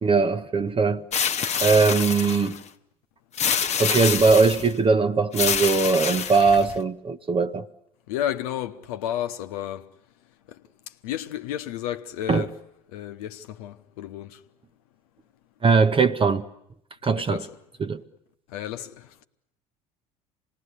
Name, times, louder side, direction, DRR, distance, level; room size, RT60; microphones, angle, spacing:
voice 1, 0.0-1.0 1.6-2.6 3.8-7.7 12.3-12.4 15.6-16.4 17.0-17.4 17.8-18.0, right 4 dB, 30° right, 0.9 m, -20 dB
sound 1, 1.1-2.6 3.4-4.7 5.3-6.8, left 7 dB, 35° left, 1.0 m, -26 dB
voice 2, 8.1-9.9 10.5-10.6 10.9-12.6 12.9-14.4 17.2-17.6 18.5-19.2, left 11 dB, 75° left, 1.0 m, -32 dB
26.5 x 19.5 x 9.8 m
hypercardioid pair, 65°, 19 cm